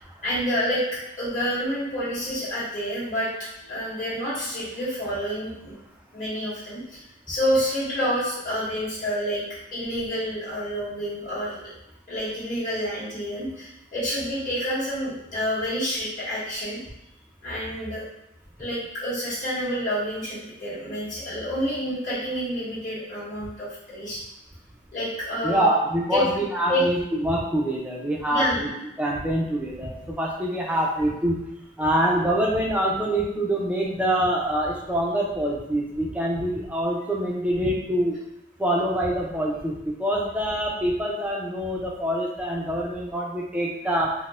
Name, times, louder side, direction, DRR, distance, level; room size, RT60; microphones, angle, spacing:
voice 1, 0.2-0.8 1.2-3.3 3.6-5.7 6.1-7.0 7.3-9.4 9.7-11.6 12.1-16.8 17.4-18.0 18.6-24.2 24.9-25.7 26.1-26.2 26.7-26.8 28.3-28.7, equal, 40° left, -10 dB, 1.5 m, -28 dB
voice 2, 25.4-28.7 29.0-31.4 31.8-38.2 38.6-44.1, right 1 dB, 5° right, -3 dB, 0.4 m, -25 dB
4.1 x 2.1 x 2.3 m, 0.88 s
head